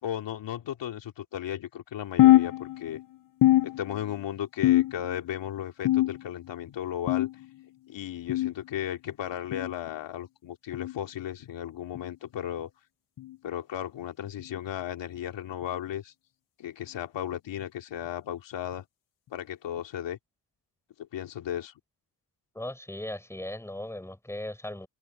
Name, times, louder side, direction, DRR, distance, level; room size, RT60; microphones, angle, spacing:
voice 1, 0.0-3.0 3.6-7.3 7.9-12.7 13.4-16.1 16.6-18.8 19.3-20.2 21.0-21.7, left 11 dB, 80° left, 3.0 m, -35 dB
sound 1, 2.2-3.0 3.4-4.2 4.6-5.2 5.8-6.5 7.1-7.4 8.3-8.5 9.5-9.7 10.7-10.9 11.9-12.1 13.2-13.4 14.4-14.6 15.6-15.7 16.8-16.9, left 15 dB, 50° left, 0.7 m, -23 dB
voice 2, 22.5-24.9, left 1 dB, 5° left, 6.8 m, -37 dB
wide cardioid pair, 150°, 43 cm